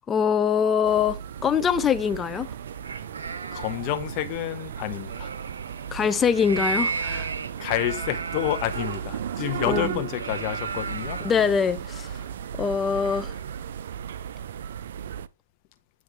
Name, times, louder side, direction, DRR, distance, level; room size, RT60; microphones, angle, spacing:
voice 1, 0.1-2.5 5.9-7.3 9.7-10.0 11.2-12.1 12.6-13.3, left 7 dB, 15° left, 0.4 m, -23 dB
sound 1, 0.8-15.3, right 8 dB, 65° right, 0.4 m, -35 dB
sound 2, 2.7-13.6, right 4 dB, 85° right, 0.9 m, -36 dB
voice 2, 3.5-5.3 7.6-11.2, left 13 dB, 40° left, 0.9 m, -29 dB
9.5 x 3.2 x 4.5 m
hypercardioid pair, 130°, 0 cm